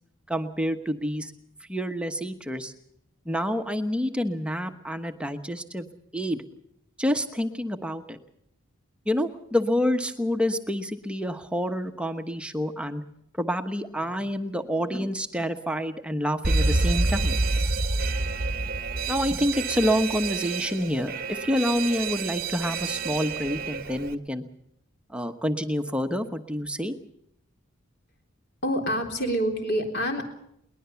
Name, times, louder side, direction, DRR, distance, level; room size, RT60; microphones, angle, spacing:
voice 1, 0.3-1.3 1.7-2.7 3.2-5.9 6.1-6.4 7.0-8.2 9.1-13.0 13.4-17.4 18.6-18.7 19.1-24.4 25.1-26.9, equal, 5° right, 7 dB, 1.1 m, -28 dB
Alarm, 16.4-24.1, right 3 dB, 40° right, 1.0 m, -28 dB
voice 2, 28.6-30.2, equal, 50° left, 3 dB, 3.7 m, -26 dB
22.0 x 20.0 x 7.0 m, 0.74 s
head